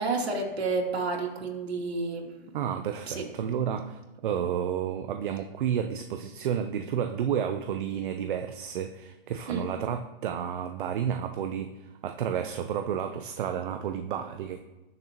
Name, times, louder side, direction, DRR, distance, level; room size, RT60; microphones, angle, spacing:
voice 1, 0.0-2.5 3.1-3.2 9.5-9.7, right 3 dB, 85° right, 0 dB, 2.8 m, -30 dB
voice 2, 2.5-14.6, right 8 dB, 55° right, 7 dB, 0.8 m, -31 dB
19.5 x 6.7 x 3.0 m, 1.1 s
hypercardioid pair, 155°, 31 cm